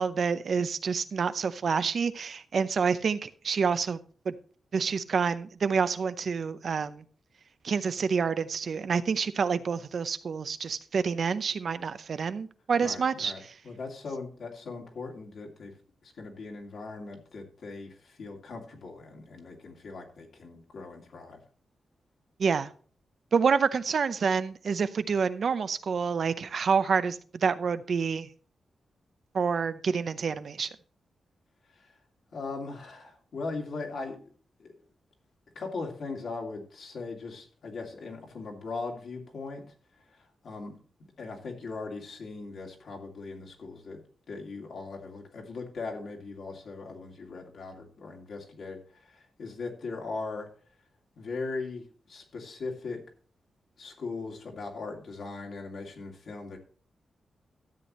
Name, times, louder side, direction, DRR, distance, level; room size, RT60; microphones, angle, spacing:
voice 1, 0.0-4.0 4.3-4.4 4.7-7.0 7.6-13.5 22.4-22.7 23.3-28.3 29.3-30.7, right 5 dB, 55° right, 13 dB, 0.6 m, -28 dB
voice 2, 12.8-15.7 16.0-21.4 31.7-31.9 32.3-34.3 34.6-34.8 35.5-39.6 40.2-40.8 41.2-44.0 44.3-50.5 51.2-53.0 53.8-56.6, left 3 dB, 65° left, 1 dB, 2.5 m, -39 dB
13.0 x 8.2 x 3.1 m, 0.42 s
wide cardioid pair, 130°, 0 cm